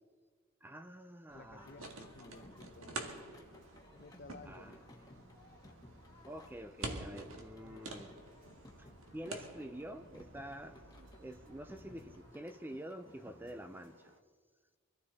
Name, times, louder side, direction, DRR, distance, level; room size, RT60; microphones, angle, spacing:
voice 1, 0.6-1.8 4.5-4.8 6.3-8.1 8.8-10.8 11.2-14.1, right 1 dB, 10° right, 0.5 m, -48 dB
voice 2, 1.3-3.2 4.0-4.8 7.3-7.8, left 3 dB, 45° left, 0.7 m, -55 dB
sound 1, 1.3-12.2, right 2 dB, 75° right, 2.0 m, -49 dB
Singing, 1.6-14.0, left 1 dB, 15° left, 1.3 m, -60 dB
sound 2, 1.6-14.2, right 1 dB, 60° right, 1.7 m, -65 dB
24.0 x 14.0 x 4.1 m
head